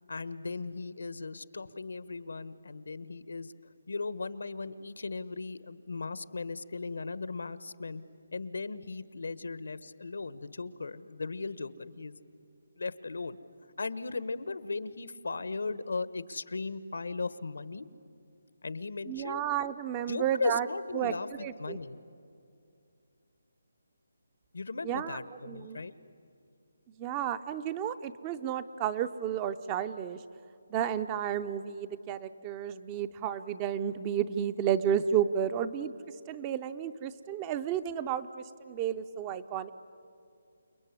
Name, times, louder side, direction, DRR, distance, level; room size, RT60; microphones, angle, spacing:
voice 1, 0.1-3.5 3.9-8.0 8.3-12.2 12.8-13.4 13.8-17.9 18.6-19.4 20.1-22.0 24.5-25.9, left 3 dB, 80° left, 15 dB, 1.3 m, -37 dB
voice 2, 19.1-20.7 20.9-21.1 21.4-21.8 24.8-25.2 25.4-25.8 27.0-30.2 30.7-35.9 36.3-39.7, right 9 dB, 15° right, 13 dB, 0.6 m, -32 dB
29.0 x 20.5 x 9.7 m, 2.5 s
hypercardioid pair, 170°, 0 cm